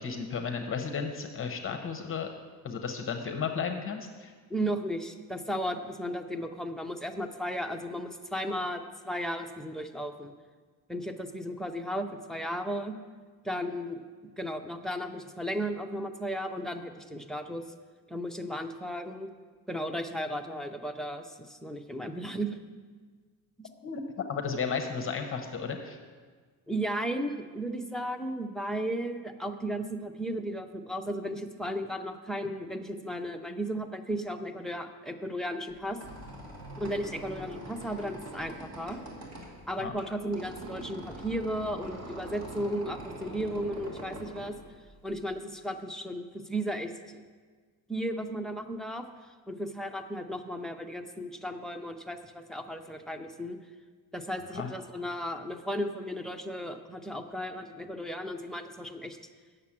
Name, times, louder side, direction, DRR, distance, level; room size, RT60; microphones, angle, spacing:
voice 1, 0.0-2.3 2.6-4.3 23.8-26.0 39.8-40.0 54.5-54.7, left 6 dB, 35° left, 5 dB, 0.8 m, -34 dB
voice 2, 4.5-10.3 10.9-12.9 13.4-14.0 14.4-17.6 18.1-19.3 19.7-22.6 23.6-23.7 26.7-36.0 36.8-39.0 39.7-44.6 45.0-47.2 47.9-49.0 49.5-53.6 54.1-59.2, equal, ahead, 6 dB, 0.3 m, -35 dB
Squeak, 35.7-45.3, right 1 dB, 40° right, 2.0 m, -44 dB
8.3 x 6.7 x 7.3 m, 1.5 s
cardioid pair, 155°, 38 cm